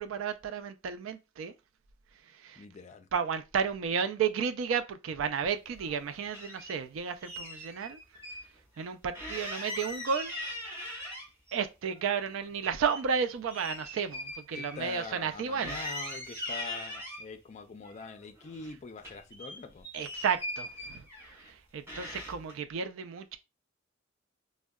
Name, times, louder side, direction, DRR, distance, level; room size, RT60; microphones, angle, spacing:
voice 1, 0.0-1.5 2.4-2.6 3.1-8.0 8.8-10.3 11.5-15.8 19.9-21.0 21.7-23.4, right 6 dB, 75° right, 0.3 m, -32 dB
voice 2, 2.6-3.1 14.5-19.9, left 4 dB, 35° left, 0.3 m, -44 dB
sound 1, 5.7-6.8 7.2-8.4 8.7-8.9 9.1-11.6 11.9-15.3 15.6-17.3 17.8-18.7 19.0-21.5 21.9-22.5, left 1 dB, 10° right, 0.9 m, -41 dB
3.6 x 2.1 x 2.2 m
head